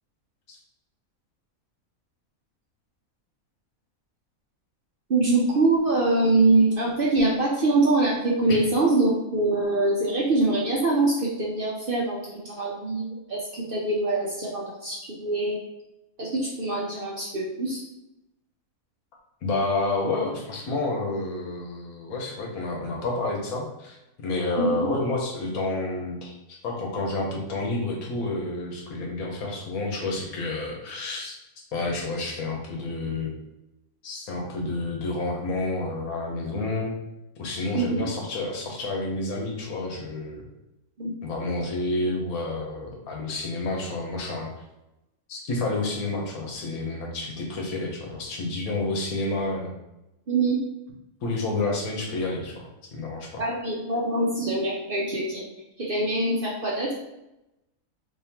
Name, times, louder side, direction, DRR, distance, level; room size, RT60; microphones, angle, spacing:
voice 1, 5.1-15.6 16.2-17.8 24.6-24.9 37.7-38.0 41.0-41.1 50.3-50.6 53.4-55.4 55.8-56.9, right 2 dB, 50° right, -4 dB, 0.7 m, -24 dB
voice 2, 19.4-26.3 26.6-31.4 31.7-33.3 34.0-36.9 37.4-40.4 41.2-44.5 45.3-49.7 51.2-52.6 52.9-53.4, left 2 dB, 80° left, 0 dB, 1.4 m, -29 dB
3.7 x 3.0 x 2.8 m, 0.91 s
omnidirectional pair, 1.5 m